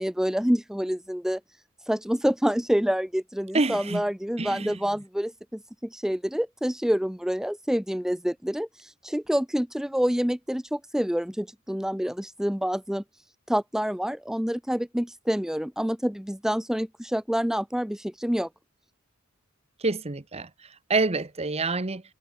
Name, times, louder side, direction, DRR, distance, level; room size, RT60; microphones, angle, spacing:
voice 1, 0.0-1.4 1.9-13.0 13.5-18.5, equal, ahead, 0.7 m, -27 dB
voice 2, 3.5-4.0 4.4-4.7 19.8-20.5 20.9-22.0, right 3 dB, 30° right, 1.1 m, -26 dB
head